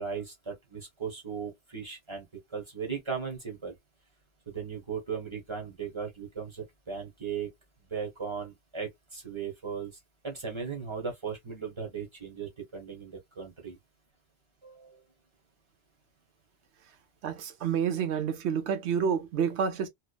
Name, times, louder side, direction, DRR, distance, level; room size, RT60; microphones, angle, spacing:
voice 1, 0.0-3.7 4.5-7.5 7.9-9.9 10.2-13.8 14.6-15.0, right 6 dB, 30° right, 0.8 m, -37 dB
voice 2, 17.2-19.9, right 7 dB, 80° right, 0.9 m, -29 dB
2.9 x 2.0 x 2.3 m
omnidirectional pair, 1.1 m